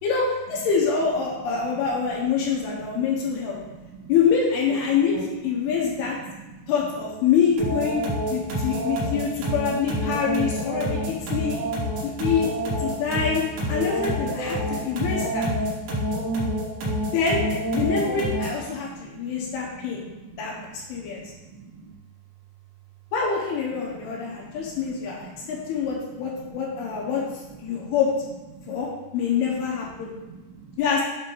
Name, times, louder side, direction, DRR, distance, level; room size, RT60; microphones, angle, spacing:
voice 1, 0.0-3.6 4.1-5.1 5.4-6.2 6.7-8.0 8.3-11.6 12.0-12.5 12.8-15.5 17.1-17.4 17.7-20.0 20.4-20.5 20.9-21.2 23.1-27.2 27.6-28.1 28.7-30.1 30.8-31.0, left 6 dB, 75° left, -3 dB, 2.6 m, -25 dB
voice 2, 2.5-4.1 4.7-4.8 5.1-5.3 5.6-5.9 6.2-6.7 8.4-9.1 10.9-11.7 11.9-12.3 12.9-13.0 14.6-16.3 18.7-22.0 23.9-25.7 26.6-27.0 27.6-27.9 28.5-28.8 29.3-29.6 30.0-30.8, right 5 dB, 80° right, -2 dB, 2.3 m, -45 dB
sound 1, 7.6-18.7, equal, 60° right, 2.3 m, -27 dB
7.5 x 2.8 x 5.2 m, 1.1 s
omnidirectional pair, 5.1 m